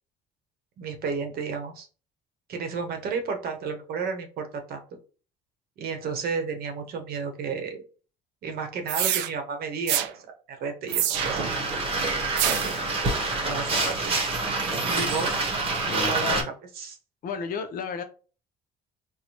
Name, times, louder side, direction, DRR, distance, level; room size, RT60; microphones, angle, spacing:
voice 1, 0.8-1.9 2.5-4.8 5.8-7.8 8.4-10.3 10.6-11.5 12.4-12.8 13.4-13.9 14.8-15.3 16.1-16.4 16.8-17.0, right 5 dB, 60° right, 5 dB, 0.9 m, -32 dB
sound 1, 8.9-9.3 9.9-10.1 10.9-11.5 12.4-12.8, right 11 dB, 90° right, 0.4 m, -26 dB
sound 2, 11.1-16.4, right 3 dB, 30° right, 0.9 m, -27 dB
voice 2, 13.4-14.3 14.6-14.9 15.9-16.5 17.2-18.0, left 6 dB, 55° left, 7 dB, 0.6 m, -34 dB
4.3 x 2.1 x 2.8 m, 0.37 s
cardioid pair, 125°, 18 cm